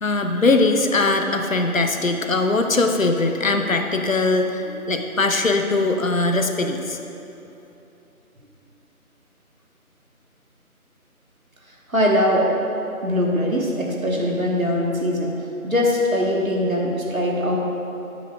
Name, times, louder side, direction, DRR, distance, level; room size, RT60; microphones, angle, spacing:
voice 1, 0.0-7.0, left 3 dB, 65° left, 5 dB, 0.8 m, -21 dB
voice 2, 11.9-12.6 13.0-15.3 15.6-17.6, left 1 dB, 65° right, -1 dB, 1.6 m, -21 dB
11.5 x 10.0 x 2.4 m, 2.9 s
figure-of-eight pair, 175°, 44 cm